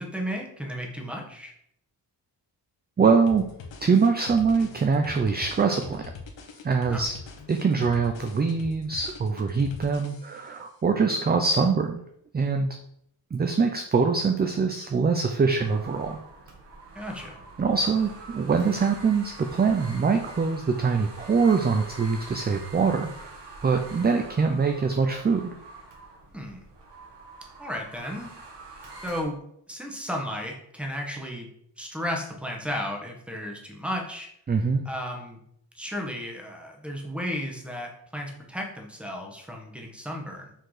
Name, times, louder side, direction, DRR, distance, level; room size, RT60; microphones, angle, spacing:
voice 1, 0.0-1.5 6.9-7.0 16.9-17.4 26.3-26.6 27.6-28.3 29.0-29.4 29.7-31.5 31.8-34.3 34.8-35.4 35.7-40.5, equal, 5° right, 1 dB, 1.1 m, -34 dB
voice 2, 3.0-3.4 3.8-6.1 6.6-7.2 7.5-12.0 12.3-12.7 13.3-16.2 17.6-23.3 23.6-25.5 34.5-34.9, right 5 dB, 25° right, 5 dB, 0.4 m, -23 dB
sound 1, 3.3-10.6, left 4 dB, 85° left, 1.2 m, -43 dB
sound 2, 15.6-29.2, right 2 dB, 70° right, 1.4 m, -45 dB
6.3 x 4.6 x 4.8 m, 0.72 s
wide cardioid pair, 175°, 44 cm